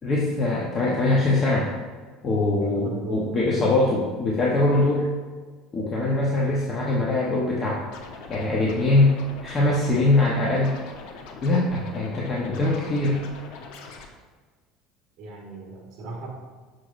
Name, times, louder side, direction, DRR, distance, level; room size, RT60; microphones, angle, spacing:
voice 1, 0.0-1.7 2.2-5.1 5.7-7.8 8.3-9.1 9.4-10.8 11.4-13.2, left 2 dB, 25° left, -4 dB, 0.8 m, -22 dB
voice 2, 2.6-3.3 15.2-16.3, right 2 dB, 50° right, -1 dB, 1.5 m, -36 dB
Scratching (performance technique), 7.9-14.1, left 4 dB, 70° left, 0.8 m, -42 dB
6.3 x 6.2 x 2.5 m, 1.4 s
cardioid pair, 150°, 0 cm